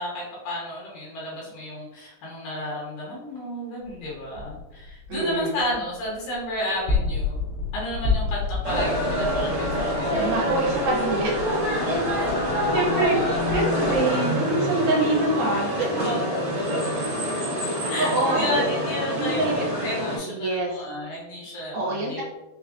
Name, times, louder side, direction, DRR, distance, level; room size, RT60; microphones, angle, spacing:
voice 1, 0.0-7.4 7.7-10.3 12.1-12.3 15.0-15.1 15.5-15.6 15.9-16.4 17.9-19.5 19.8-22.2, equal, 70° left, -5 dB, 2.4 m, -32 dB
sound 1, 3.8-14.0, left 4 dB, 85° left, 2.6 m, -31 dB
voice 2, 5.1-5.6 10.2-11.4 12.7-16.0 18.0-18.5 19.2-19.7 20.3-20.7 21.7-22.2, right 2 dB, 80° right, -2 dB, 2.4 m, -25 dB
sound 2, 8.6-20.2, equal, 60° right, 1.2 m, -26 dB
5.8 x 2.2 x 2.4 m, 1.0 s
omnidirectional pair, 4.4 m